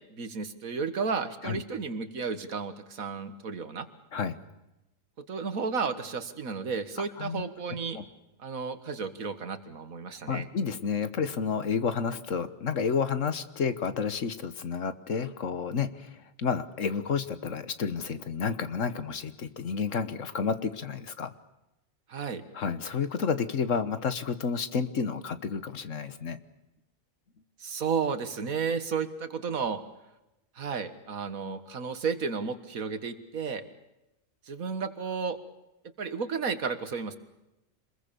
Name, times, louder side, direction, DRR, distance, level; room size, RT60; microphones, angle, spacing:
voice 1, 0.1-3.9 5.3-8.0 8.4-10.5 22.1-22.4 27.6-29.8 30.6-33.6 34.5-35.4 36.0-37.2, right 5 dB, 80° right, 11 dB, 2.0 m, -32 dB
voice 2, 10.3-21.3 22.5-26.4, left 6 dB, 65° left, 12 dB, 1.6 m, -30 dB
26.5 x 21.5 x 6.9 m, 0.95 s
omnidirectional pair, 1.4 m